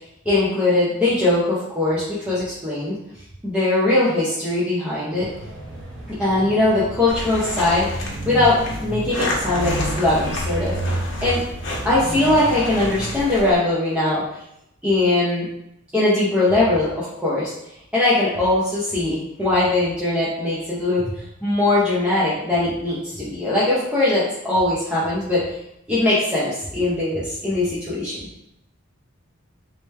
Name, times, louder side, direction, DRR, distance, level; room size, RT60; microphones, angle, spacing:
voice 1, 0.2-2.9 3.4-5.3 6.2-10.8 11.2-11.4 11.8-14.4 14.8-15.5 15.9-17.5 17.9-21.1 21.4-25.5 25.9-28.2, left 2 dB, 5° right, -9 dB, 0.7 m, -20 dB
sound 1, 5.1-13.3, right 1 dB, 60° right, 0.7 m, -31 dB
sound 2, 7.1-13.5, left 1 dB, 60° left, 0.8 m, -31 dB
3.3 x 3.0 x 3.2 m, 0.79 s
head